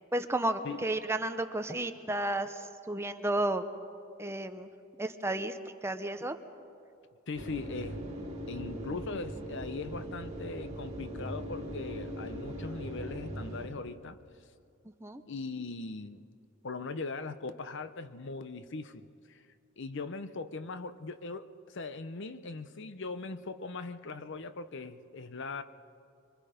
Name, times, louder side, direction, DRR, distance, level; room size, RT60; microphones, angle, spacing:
voice 1, 0.1-3.7 4.2-4.7 5.0-6.3 15.0-15.2, right 1 dB, 15° right, 8 dB, 0.8 m, -32 dB
voice 2, 7.3-8.0 8.5-14.2 15.3-16.2 16.6-19.4 19.8-25.6, left 3 dB, 60° left, 12 dB, 0.8 m, -40 dB
sound 1, 7.3-13.7, right 1 dB, 30° right, 3.9 m, -40 dB
25.5 x 24.0 x 5.1 m, 2.5 s
head